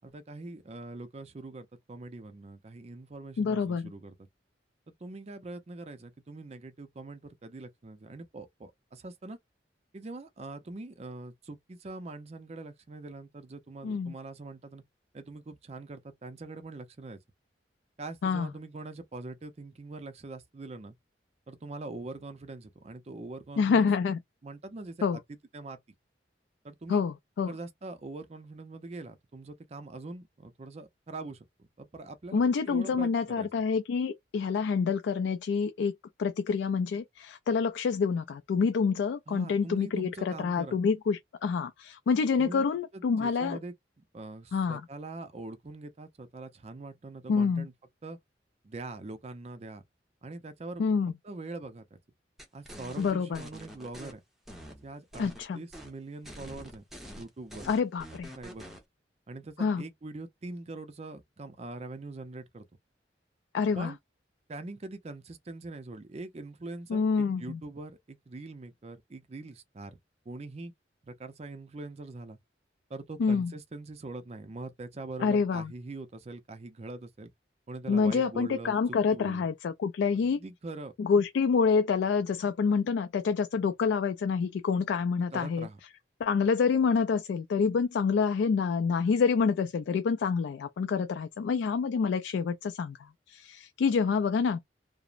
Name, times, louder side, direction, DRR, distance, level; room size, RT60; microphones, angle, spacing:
voice 1, 0.0-4.1 4.9-9.4 9.9-14.8 15.1-17.2 18.0-21.0 21.5-23.9 24.4-25.1 25.5-25.8 26.6-27.0 27.5-33.5 39.3-40.8 42.4-42.7 42.9-43.7 44.1-47.7 48.0-48.2 48.6-49.8 50.2-50.9 51.2-52.0 52.5-54.2 54.7-56.8 57.2-57.7 58.4-58.7 59.3-62.6 63.7-64.0 64.5-70.0 70.3-70.7 71.0-72.4 72.9-77.3 77.7-78.8 79.1-79.5 80.1-80.9 85.3-85.8, right 2 dB, 35° right, 0.5 m, -43 dB
voice 2, 3.4-3.9 13.8-14.1 18.2-18.5 23.6-24.2 25.0-25.2 26.9-27.5 32.3-35.9 36.2-43.6 44.5-44.8 47.3-47.7 50.8-51.1 53.0-53.4 55.2-55.6 57.6-58.3 59.6-59.8 63.5-63.9 66.9-67.6 73.2-73.5 75.2-75.7 77.9-80.4 81.0-85.7 86.2-94.6, left 5 dB, 80° left, 0.3 m, -27 dB
sound 1, 52.4-54.1 54.5-55.4 55.7-55.9 56.2-58.8, equal, ahead, 0.7 m, -46 dB
2.9 x 2.0 x 2.4 m
head